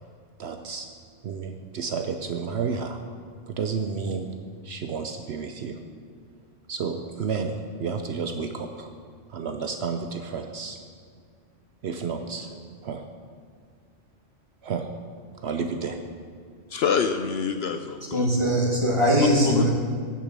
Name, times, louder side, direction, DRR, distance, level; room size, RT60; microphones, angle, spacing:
voice 1, 0.4-0.9 1.2-3.0 3.5-4.3 4.6-5.8 6.7-8.9 9.3-10.8 11.8-13.0 14.6-14.9 15.3-16.0, right 5 dB, 60° right, 6 dB, 0.8 m, -31 dB
voice 2, 16.7-18.3 19.4-19.7, left 6 dB, 65° left, 7 dB, 0.7 m, -26 dB
voice 3, 18.1-19.7, equal, 25° right, -2 dB, 1.8 m, -21 dB
8.8 x 7.0 x 7.4 m, 2.1 s
omnidirectional pair, 1.3 m